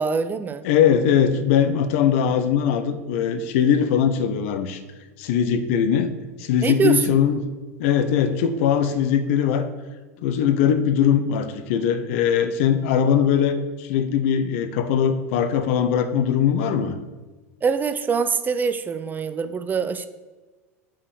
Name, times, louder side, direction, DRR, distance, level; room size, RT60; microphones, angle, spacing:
voice 1, 0.0-0.6 6.6-7.0 17.6-20.1, right 5 dB, 20° right, 10 dB, 0.4 m, -24 dB
voice 2, 0.6-4.8 5.2-6.1 6.4-7.4 7.8-9.7 10.2-16.9, left 8 dB, 55° left, 10 dB, 0.7 m, -21 dB
5.8 x 4.7 x 6.3 m, 1.3 s
figure-of-eight pair, 80°, 8 cm